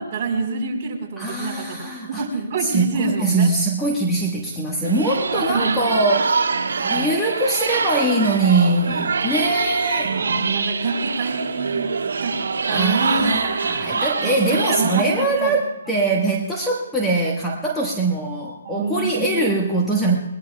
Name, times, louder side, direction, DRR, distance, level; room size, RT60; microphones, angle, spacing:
voice 1, 0.0-3.5 5.5-5.8 6.8-7.1 10.0-11.9 12.2-12.4 12.6-13.6 14.2-15.6 18.6-19.6, right 3 dB, 35° right, -2 dB, 4.2 m, -26 dB
voice 2, 1.2-2.2 2.6-6.4 6.8-10.1 12.7-20.1, right 2 dB, 5° left, -3 dB, 1.4 m, -22 dB
sound 1, 4.8-15.0, right 5 dB, 80° right, 1.5 m, -24 dB
22.0 x 20.5 x 2.3 m, 1.1 s
hypercardioid pair, 155°, 0 cm